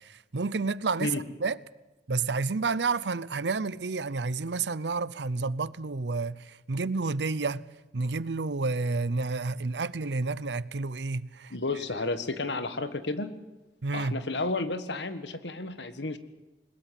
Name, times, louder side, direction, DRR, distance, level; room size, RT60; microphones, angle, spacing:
voice 1, 0.0-1.1 1.4-1.6 2.1-7.7 7.9-11.5 13.8-14.2, right 4 dB, 80° right, 0.7 m, -30 dB
voice 2, 11.5-13.3 13.9-16.2, left 3 dB, 85° left, 1.6 m, -32 dB
21.0 x 21.0 x 7.6 m
head